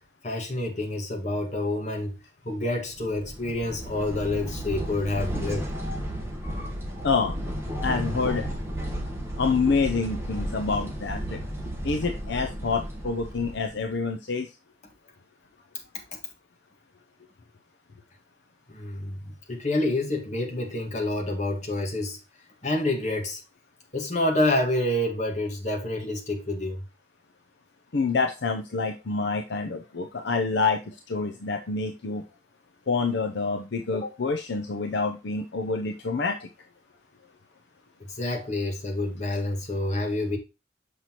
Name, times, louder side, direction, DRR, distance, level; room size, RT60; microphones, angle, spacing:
voice 1, 0.2-2.2 2.5-5.7 16.1-16.2 18.7-22.2 22.6-23.4 23.9-26.8 33.9-34.1 38.1-40.4, left 1 dB, 35° left, 1.7 m, -28 dB
sound 1, 3.0-14.0, equal, 10° right, 1.3 m, -33 dB
voice 2, 7.0-7.3 7.8-8.4 9.4-11.4 11.8-14.5 27.9-32.2 32.9-36.5, left 4 dB, 60° left, 0.6 m, -27 dB
6.6 x 5.8 x 3.0 m
head